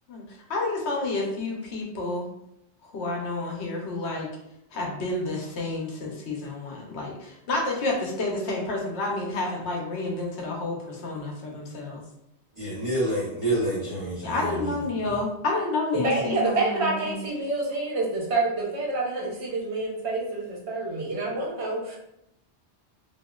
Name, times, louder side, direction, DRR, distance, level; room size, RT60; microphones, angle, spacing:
voice 1, 0.1-2.3 2.8-4.3 4.7-12.0 14.2-17.2, left 2 dB, 75° left, -1 dB, 1.0 m, -30 dB
voice 2, 12.5-14.8, right 1 dB, 30° right, -10 dB, 1.1 m, -28 dB
voice 3, 16.0-22.0, right 2 dB, 70° right, -3 dB, 1.1 m, -27 dB
2.8 x 2.7 x 2.3 m, 0.80 s
omnidirectional pair, 1.1 m